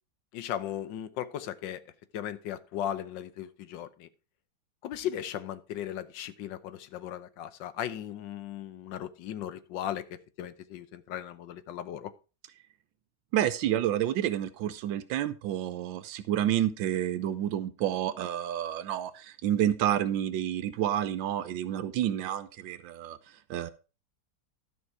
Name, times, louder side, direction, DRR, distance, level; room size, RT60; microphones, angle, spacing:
voice 1, 0.3-1.8 2.1-4.1 4.8-12.1, left 10 dB, 75° left, 13 dB, 1.4 m, -37 dB
voice 2, 13.3-23.2 23.5-23.7, right 11 dB, 85° right, 13 dB, 1.4 m, -29 dB
12.5 x 5.4 x 4.7 m, 0.33 s
omnidirectional pair, 2.1 m